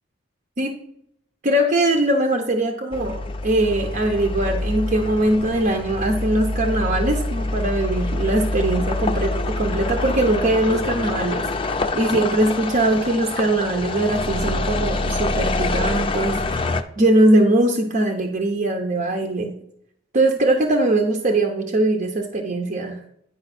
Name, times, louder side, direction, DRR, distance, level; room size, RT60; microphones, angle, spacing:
voice 1, 1.4-16.6 17.0-19.5 20.1-23.0, right 1 dB, 45° right, 3 dB, 0.7 m, -21 dB
sound 1, 2.9-16.8, left 2 dB, 30° left, 0.5 m, -26 dB
9.8 x 5.2 x 4.2 m, 0.74 s
head